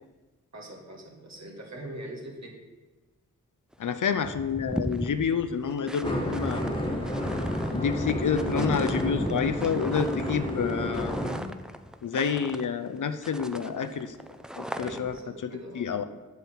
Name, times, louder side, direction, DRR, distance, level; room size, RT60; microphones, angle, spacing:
voice 1, 0.5-2.6 14.8-16.1, right 1 dB, 60° right, 0 dB, 1.8 m, -42 dB
sound 1, 3.7-3.8 4.1-13.0 13.2-15.2, equal, ahead, 0.4 m, -37 dB
voice 2, 3.8-6.6 7.7-11.1 12.0-14.1 14.6-15.2 15.4-16.0, left 6 dB, 75° left, 10 dB, 0.6 m, -28 dB
sound 2, 6.0-11.4, left 1 dB, 15° left, 1.4 m, -31 dB
8.1 x 6.6 x 4.6 m, 1.2 s
cardioid pair, 50°, 31 cm